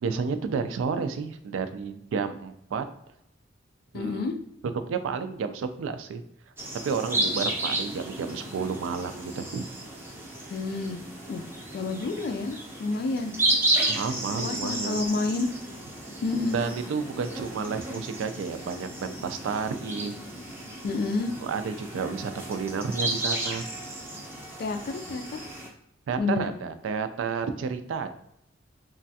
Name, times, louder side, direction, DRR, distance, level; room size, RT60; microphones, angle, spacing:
voice 1, 0.0-2.8 3.9-4.3 4.9-6.2 6.8-9.6 13.9-15.0 16.5-20.1 21.3-23.7 26.1-28.1, right 5 dB, 85° right, 10 dB, 0.3 m, -31 dB
voice 2, 3.9-4.3 10.5-11.0 11.3-11.4 11.7-13.3 14.4-15.5 16.2-16.6 20.8-21.3 24.6-25.4 26.2-26.5, left 3 dB, 55° left, 7 dB, 0.3 m, -29 dB
sound 1, 6.6-25.7, right 2 dB, 10° right, 0.5 m, -33 dB
3.1 x 2.2 x 2.7 m, 0.77 s
head